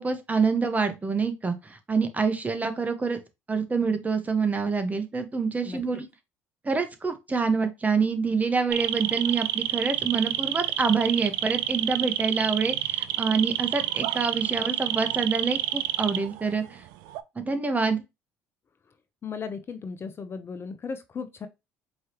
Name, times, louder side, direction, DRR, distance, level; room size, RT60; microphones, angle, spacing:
voice 1, 0.0-3.2 3.5-6.1 6.6-16.8 17.4-18.0, right 4 dB, 25° right, 1.0 m, -26 dB
sound 1, 8.7-16.6 16.9-17.2, right 14 dB, 75° right, 0.4 m, -28 dB
voice 2, 19.2-21.5, left 5 dB, 35° left, 0.7 m, -36 dB
4.6 x 3.1 x 2.9 m
hypercardioid pair, 70°, 7 cm